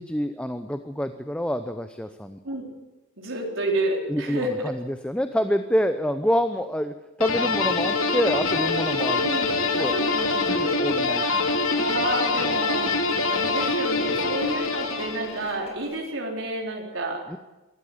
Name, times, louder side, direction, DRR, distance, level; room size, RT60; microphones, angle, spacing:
voice 1, 0.0-2.4 4.1-9.3 9.7-9.9 10.5-11.6 17.3-17.4, equal, 5° left, 9 dB, 0.7 m, -27 dB
voice 2, 3.2-4.5 9.2-17.2, right 2 dB, 65° right, 0 dB, 4.1 m, -30 dB
sound 1, 7.2-15.5, left 3 dB, 75° left, 2.8 m, -24 dB
sound 2, 7.6-16.0, left 1 dB, 30° left, 5.7 m, -42 dB
24.5 x 14.0 x 9.7 m, 1.1 s
head